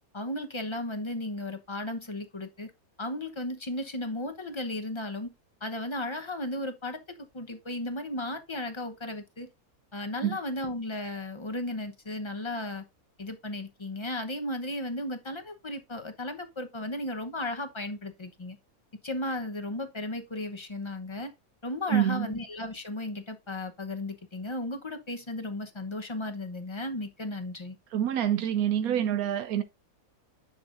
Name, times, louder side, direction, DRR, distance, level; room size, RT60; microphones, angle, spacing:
voice 1, 0.1-2.7 3.0-5.3 5.6-9.5 9.9-12.8 13.2-18.6 19.0-21.3 21.6-27.8, left 1 dB, 25° left, 0.8 m, -35 dB
voice 2, 21.9-22.3 27.9-29.6, right 10 dB, 80° right, 1.1 m, -26 dB
10.5 x 6.7 x 2.6 m
omnidirectional pair, 1.5 m